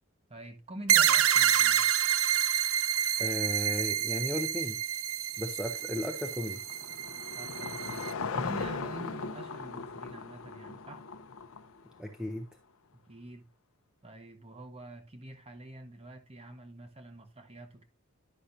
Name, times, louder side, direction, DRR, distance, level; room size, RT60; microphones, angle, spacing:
voice 1, 0.3-1.9 7.4-8.1 8.3-11.0 12.9-13.5 14.0-17.8, right 1 dB, 30° right, 0.9 m, -46 dB
sound 1, 0.9-8.1, right 10 dB, 70° right, 0.4 m, -28 dB
voice 2, 3.2-4.8 5.4-6.6 12.0-12.5, left 1 dB, 5° right, 0.5 m, -35 dB
Car passing by / Engine, 5.7-12.2, left 4 dB, 70° left, 0.6 m, -39 dB
10.0 x 5.6 x 2.5 m
head